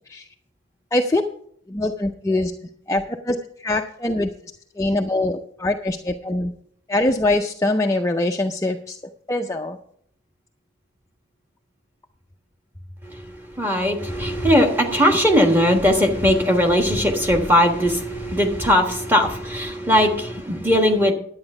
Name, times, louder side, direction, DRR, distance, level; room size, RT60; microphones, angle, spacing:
voice 1, 0.9-1.2 1.7-4.3 4.8-6.5 6.9-9.0 9.3-9.8, left 2 dB, 15° left, 3 dB, 0.4 m, -23 dB
voice 2, 13.0-21.1, equal, 10° right, 2 dB, 1.4 m, -19 dB
11.0 x 8.8 x 5.4 m, 0.66 s
head